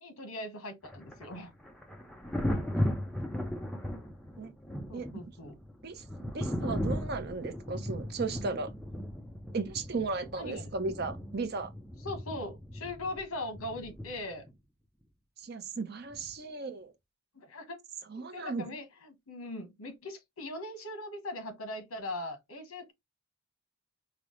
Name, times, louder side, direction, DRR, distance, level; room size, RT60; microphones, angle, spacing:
voice 1, 0.0-1.5 4.9-5.6 10.4-10.7 12.0-14.4 17.3-17.8 18.3-22.9, left 1 dB, 80° left, 1.1 m, -40 dB
Thunder, 0.8-14.5 16.1-16.3, equal, 5° left, 0.5 m, -37 dB
voice 2, 2.8-3.3 4.4-4.5 4.9-5.1 5.8-8.7 9.5-11.7 15.4-16.9 18.1-18.8, right 3 dB, 45° right, 0.5 m, -36 dB
4.8 x 2.0 x 3.0 m
head